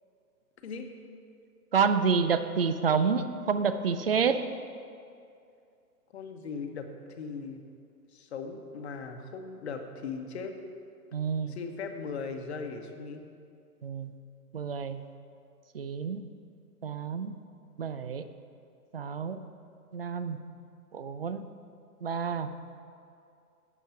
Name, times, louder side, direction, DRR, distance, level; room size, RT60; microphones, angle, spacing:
voice 1, 1.7-4.4 11.1-11.6 13.8-14.1 14.5-15.0 15.7-16.2 16.8-17.3 17.8-18.2 18.9-19.4 19.9-20.4 20.9-21.4 22.0-22.5, right 6 dB, 40° right, 11 dB, 0.4 m, -28 dB
voice 2, 6.1-6.9 7.2-7.6 8.1-10.5 11.5-13.2, left 5 dB, 45° left, 5 dB, 1.1 m, -38 dB
12.0 x 8.4 x 5.7 m, 2.5 s
hypercardioid pair, 170°, 47 cm